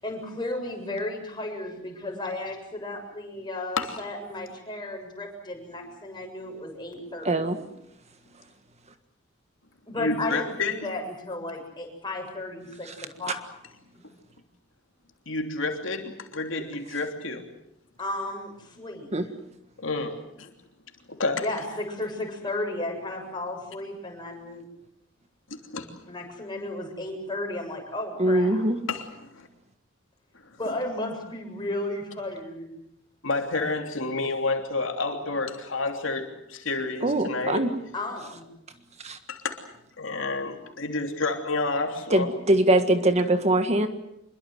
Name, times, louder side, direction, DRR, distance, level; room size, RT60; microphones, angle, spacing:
voice 1, 0.0-7.6 9.9-13.6 18.0-19.3 21.4-24.6 26.1-28.6 30.6-32.8 37.9-38.5, left 2 dB, 25° left, 1 dB, 7.4 m, -34 dB
voice 2, 7.2-7.6 12.9-13.0 19.1-19.3 28.2-28.8 37.0-37.7 39.0-39.2 42.1-43.9, right 1 dB, 35° right, 8 dB, 1.6 m, -22 dB
voice 3, 10.0-10.9 15.3-17.4 19.8-20.5 21.1-21.4 25.7-25.9 28.9-29.1 29.3-29.5 33.2-37.6 39.3-39.6 40.0-42.3, left 3 dB, 70° left, 4 dB, 3.1 m, -29 dB
26.0 x 22.5 x 7.9 m, 0.80 s
head